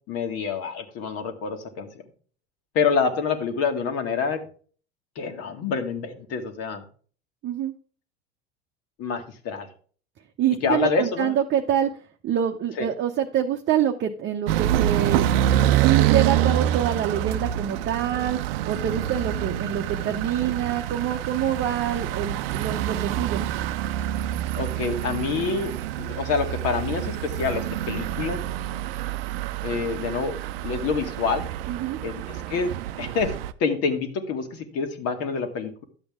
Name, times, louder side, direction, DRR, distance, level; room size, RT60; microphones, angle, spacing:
voice 1, 0.1-1.9 2.7-4.4 5.2-6.8 9.0-9.7 10.6-11.3 12.8-12.9 24.6-28.4 29.6-30.3 30.6-31.5 32.0-32.7 33.0-35.8, left 5 dB, 50° left, 6 dB, 2.0 m, -27 dB
voice 2, 7.4-7.7 10.4-11.9 12.2-18.4 18.7-23.4 31.7-32.0, right 9 dB, 35° right, 4 dB, 0.9 m, -26 dB
sound 1, 14.5-33.5, right 12 dB, 60° right, 0.7 m, -26 dB
11.5 x 7.9 x 3.6 m, 0.42 s
figure-of-eight pair, 75°, 32 cm